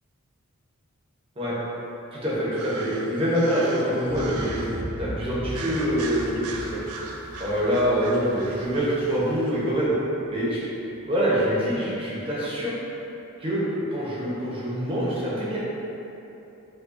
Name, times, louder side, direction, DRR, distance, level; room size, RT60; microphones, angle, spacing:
voice 1, 2.1-6.8 7.4-9.9 10.3-10.6 11.0-12.7 13.4-13.6 13.9-15.6, equal, 25° right, -8 dB, 0.7 m, -25 dB
sound 1, 2.5-4.8 5.5-9.5, right 3 dB, 75° right, 0.3 m, -39 dB
Explosion, 4.0-10.1 10.4-10.5, right 1 dB, 5° left, 0.3 m, -38 dB
4.6 x 2.3 x 2.5 m, 3.0 s
head